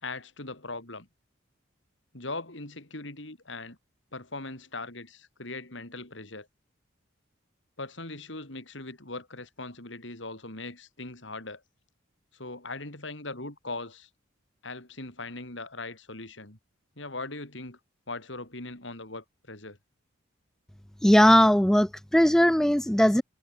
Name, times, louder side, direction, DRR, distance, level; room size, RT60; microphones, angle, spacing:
voice 1, 0.0-1.1 2.1-3.8 4.1-6.5 7.8-11.6 12.3-14.1 14.6-16.6 17.0-17.8 18.1-19.8, left 2 dB, 65° left, 4.7 m, -40 dB
voice 2, 21.0-23.2, equal, 5° left, 0.3 m, -19 dB
head